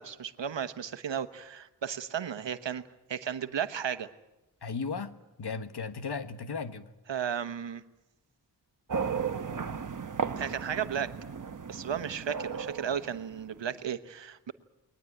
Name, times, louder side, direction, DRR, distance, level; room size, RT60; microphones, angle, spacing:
voice 1, 0.0-2.8 3.1-4.1 7.1-7.8 10.4-11.1 11.7-14.5, right 8 dB, 80° right, 11 dB, 1.2 m, -34 dB
voice 2, 4.6-5.1 5.4-6.9, left 5 dB, 60° left, 11 dB, 1.4 m, -35 dB
sound 1, 8.9-13.7, right 6 dB, 45° right, 1.1 m, -35 dB
21.5 x 19.5 x 9.1 m, 0.97 s
wide cardioid pair, 130°, 43 cm